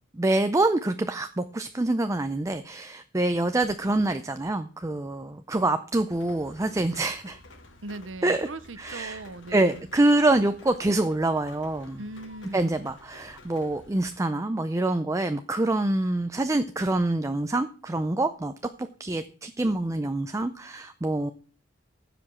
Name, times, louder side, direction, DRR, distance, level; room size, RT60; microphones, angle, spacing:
voice 1, 0.1-7.4 8.2-8.5 8.8-9.2 9.5-12.0 12.5-18.5 18.8-21.3, right 2 dB, 15° right, 0.5 m, -26 dB
Rain, 6.1-14.1, left 2 dB, 80° left, 1.9 m, -51 dB
voice 2, 7.8-9.9 12.0-12.9, right 2 dB, 85° right, 0.8 m, -39 dB
15.0 x 5.1 x 6.2 m
head